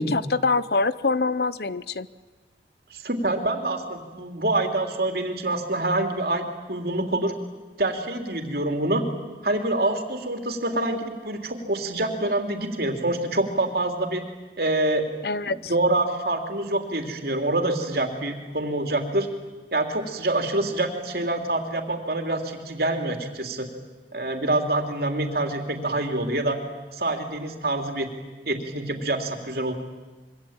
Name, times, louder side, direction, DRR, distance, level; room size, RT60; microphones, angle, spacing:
voice 1, 0.0-2.1 15.2-15.7, left 3 dB, 65° left, 16 dB, 0.8 m, -24 dB
voice 2, 2.9-7.3 7.8-9.1 9.4-14.3 14.6-15.1 15.4-19.3 19.7-23.7 24.1-26.6 26.9-28.1 28.4-29.7, right 2 dB, 55° right, 4 dB, 3.2 m, -26 dB
26.5 x 24.5 x 8.9 m, 1.2 s
head